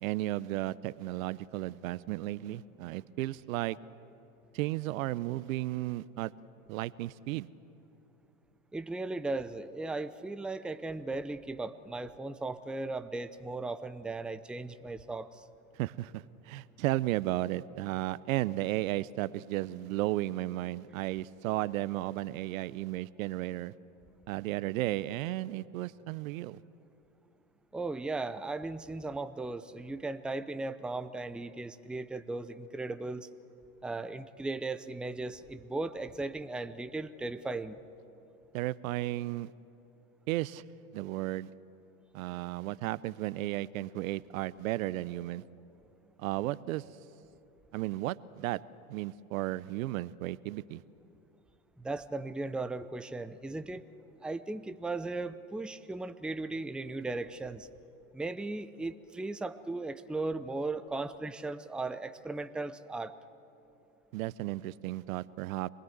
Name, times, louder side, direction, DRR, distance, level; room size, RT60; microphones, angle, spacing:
voice 1, 0.0-3.8 4.5-6.3 6.7-7.5 15.7-23.7 24.3-26.6 38.5-39.5 40.3-40.6 40.9-41.5 42.1-45.4 46.2-46.8 47.7-48.6 48.9-50.8 64.1-65.7, right 16 dB, 65° right, 19 dB, 0.8 m, -34 dB
voice 2, 8.7-15.4 27.7-33.3 33.8-37.8 51.8-53.9 54.2-57.7 58.1-63.1, right 2 dB, ahead, 11 dB, 0.6 m, -37 dB
26.5 x 20.5 x 8.0 m, 2.8 s
hypercardioid pair, 100°, 45 cm